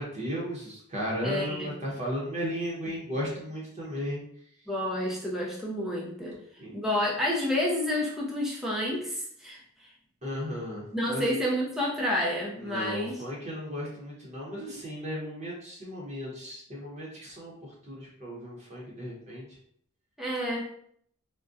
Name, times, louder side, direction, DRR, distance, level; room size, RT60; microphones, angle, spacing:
voice 1, 0.0-4.2 6.6-6.7 10.2-11.3 12.6-19.5, equal, 30° right, -5 dB, 0.8 m, -35 dB
voice 2, 1.2-1.7 4.7-6.4 6.7-9.6 10.9-13.2 20.2-20.7, left 1 dB, ahead, -4 dB, 0.5 m, -29 dB
3.6 x 2.1 x 2.5 m, 0.65 s
head